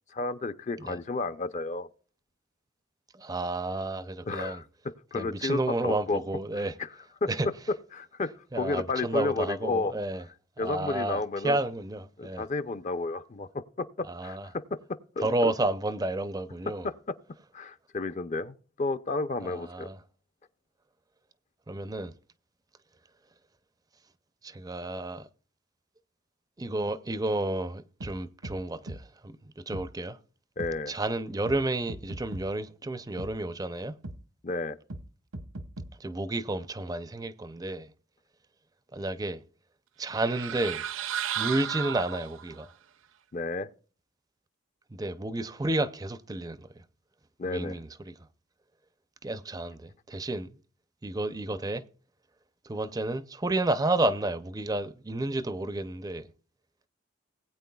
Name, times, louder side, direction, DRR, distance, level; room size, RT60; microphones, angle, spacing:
voice 1, 0.1-1.9 4.3-4.6 5.1-6.2 6.5-6.9 7.2-7.3 7.9-9.9 10.6-11.6 12.2-13.5 13.8-14.6 14.9-15.5 16.8-16.9 17.5-19.9 30.6-30.9 34.4-34.8 43.3-43.7 47.4-47.8, left 3 dB, 35° left, 0.5 m, -32 dB
voice 2, 3.1-4.6 5.1-6.8 7.3-7.5 8.5-10.3 10.6-12.5 14.0-14.5 15.2-16.9 19.4-20.0 21.7-22.1 24.4-25.3 26.6-30.2 30.9-34.0 36.0-37.9 38.9-39.4 40.0-40.8 41.4-42.7 44.9-46.8 47.5-48.3 49.2-50.6 51.0-51.8 52.6-56.3, right 2 dB, 15° right, 0.5 m, -31 dB
sound 1, 28.0-28.1 28.4-28.6 28.9-29.0 29.7-29.9 30.6-30.7 31.5-31.6 31.9-32.5 33.2-33.3 34.0-34.2 34.9-35.0 35.3-35.9, right 1 dB, 85° right, 1.2 m, -39 dB
sound 2, 40.0-42.6, right 9 dB, 70° right, 0.6 m, -34 dB
19.5 x 8.9 x 2.3 m
head